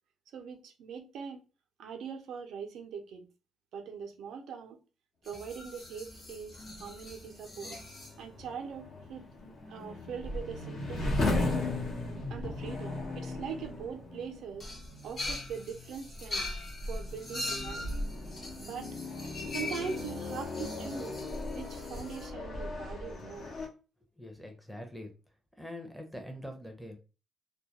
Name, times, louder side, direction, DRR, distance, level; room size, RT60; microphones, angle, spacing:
voice 1, 0.3-1.4 1.8-3.3 3.7-4.8 5.2-7.8 8.2-9.3 9.7-11.4 12.3-14.7 15.0-16.5 16.9-17.9 18.6-19.0 19.5-21.2 21.5-23.5, right 6 dB, 75° right, 0.5 m, -42 dB
sound 1, 5.3-8.2 9.4-9.5 9.8-10.1 10.8-10.9 14.6-22.3, left 2 dB, 35° left, 0.7 m, -42 dB
sound 2, 6.6-23.7, left 2 dB, 65° left, 0.8 m, -37 dB
voice 2, 24.2-25.1 25.6-27.0, left 1 dB, ahead, 0.6 m, -43 dB
2.2 x 2.1 x 2.8 m
cardioid pair, 90°, 0 cm